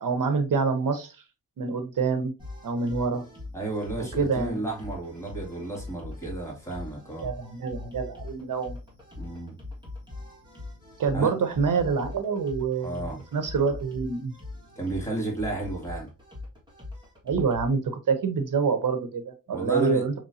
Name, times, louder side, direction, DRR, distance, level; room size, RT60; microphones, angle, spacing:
voice 1, 0.0-1.1 1.6-2.3 2.6-3.2 4.2-4.6 7.2-8.8 11.0-14.3 17.2-20.1, right 5 dB, 75° right, 0.8 m, -26 dB
sound 1, 2.4-17.7, left 2 dB, 15° right, 1.8 m, -42 dB
voice 2, 3.5-7.3 9.2-9.6 11.1-11.3 12.8-13.2 14.8-16.1 19.5-20.0, right 2 dB, 10° left, 2.1 m, -32 dB
5.2 x 3.1 x 2.7 m
wide cardioid pair, 130°, 33 cm